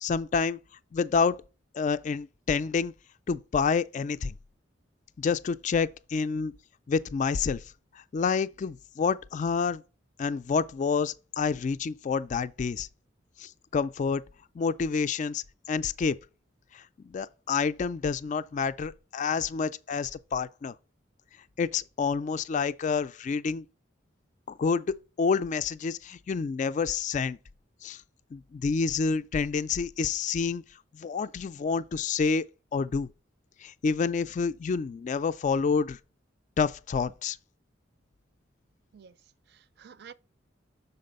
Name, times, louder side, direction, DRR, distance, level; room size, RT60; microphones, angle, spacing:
voice 1, 0.0-0.6 0.9-1.4 1.7-2.9 3.3-4.3 5.2-6.5 6.9-7.6 7.9-9.8 10.2-12.9 13.4-14.2 14.6-16.2 16.7-20.7 21.6-23.6 24.5-24.9 25.2-27.4 27.8-28.0 28.3-30.6 30.9-32.5 32.7-33.1 33.6-36.0 36.6-37.4, left 5 dB, 40° left, 0.3 m, -28 dB
voice 2, 38.9-40.1, right 7 dB, 60° right, 0.5 m, -51 dB
6.6 x 4.1 x 5.2 m
head